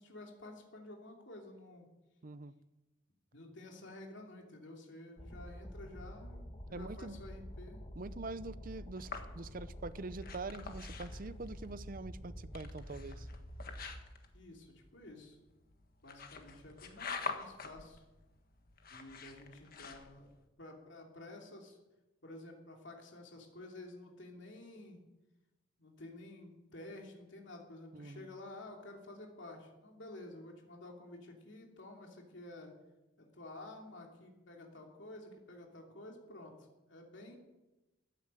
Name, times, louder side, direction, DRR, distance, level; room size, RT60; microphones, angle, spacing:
voice 1, 0.0-1.9 3.3-7.8 14.3-15.4 16.0-18.0 18.9-20.3 20.6-21.8 22.2-25.0 25.8-32.7 33.2-37.4, left 2 dB, 65° left, 1 dB, 2.9 m, -51 dB
voice 2, 2.2-2.5 6.7-7.2 8.0-13.3 27.9-28.3, right 3 dB, 45° right, 14 dB, 0.6 m, -44 dB
sound 1, 5.2-14.0, equal, 30° left, 1.6 m, -48 dB
sound 2, 9.0-20.4, left 4 dB, 45° left, 1.5 m, -47 dB
14.0 x 9.8 x 9.0 m, 1.0 s
head